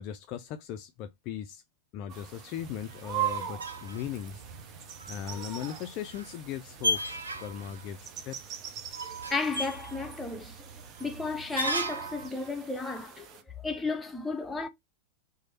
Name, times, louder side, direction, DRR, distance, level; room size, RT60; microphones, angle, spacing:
voice 1, 0.0-1.6 1.9-8.4, left 10 dB, 40° left, 0.3 m, -39 dB
sound 1, 2.1-13.4, right 11 dB, 35° right, 0.6 m, -41 dB
sound 2, 2.6-12.3, right 1 dB, 75° right, 0.6 m, -37 dB
voice 2, 9.0-14.7, left 3 dB, 10° left, 0.7 m, -34 dB
3.1 x 2.1 x 4.0 m
figure-of-eight pair, 90°, 0 cm